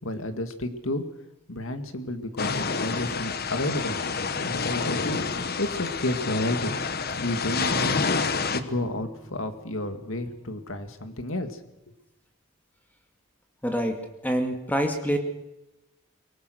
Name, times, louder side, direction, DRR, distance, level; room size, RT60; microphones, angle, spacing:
voice 1, 0.0-1.1 1.5-4.0 4.4-5.2 5.6-6.7 7.2-8.0 8.3-11.6, left 1 dB, 70° left, 8 dB, 2.1 m, -31 dB
sound 1, 2.4-8.6, left 5 dB, 45° left, 1.1 m, -28 dB
Acoustic guitar, 7.7-10.9, right 1 dB, 10° right, 6.5 m, -46 dB
voice 2, 13.6-14.0 14.2-15.2, equal, 10° left, 4 dB, 2.2 m, -26 dB
24.0 x 20.0 x 6.4 m, 0.95 s
head